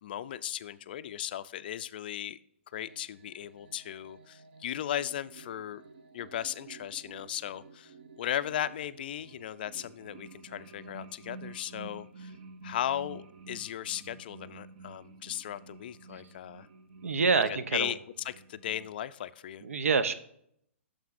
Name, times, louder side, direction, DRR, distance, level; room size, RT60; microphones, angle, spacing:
voice 1, 0.0-2.4 2.7-5.8 6.1-12.3 12.6-16.7 17.3-17.4 17.7-19.6, left 11 dB, 45° left, 14 dB, 0.3 m, -36 dB
sound 1, 2.8-18.9, right 4 dB, 45° right, 0.6 m, -51 dB
voice 2, 17.0-17.9 19.6-20.1, right 5 dB, 85° right, 13 dB, 0.7 m, -26 dB
9.3 x 6.6 x 2.5 m, 0.70 s
hypercardioid pair, 160°, 7 cm